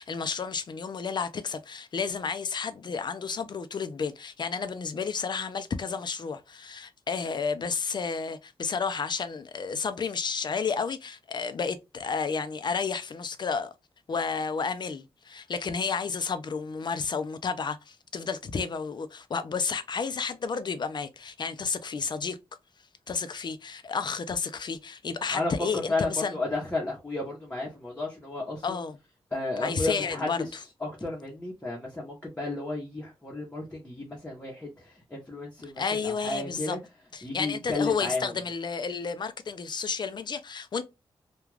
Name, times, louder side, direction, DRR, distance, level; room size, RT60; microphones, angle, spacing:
voice 1, 0.0-13.7 14.1-22.4 23.1-26.4 28.6-29.0 29.6-30.6 35.8-36.8 37.1-40.8, left 5 dB, 50° left, 0.4 m, -31 dB
voice 2, 25.3-28.8 29.3-30.5 30.8-36.8 37.2-38.3, left 2 dB, 15° left, 0.8 m, -33 dB
2.4 x 2.3 x 3.1 m
wide cardioid pair, 100°, 10 cm